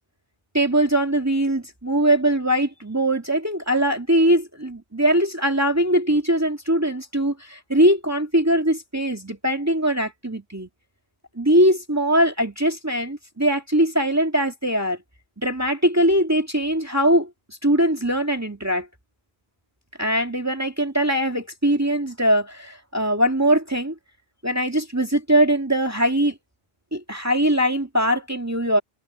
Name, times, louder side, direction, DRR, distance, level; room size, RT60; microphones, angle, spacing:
voice 1, 0.5-10.7 11.4-15.0 15.4-18.9 20.0-23.9 24.4-26.3 26.9-28.8, right 1 dB, 15° right, 2.1 m, -21 dB
omnidirectional pair, 1.1 m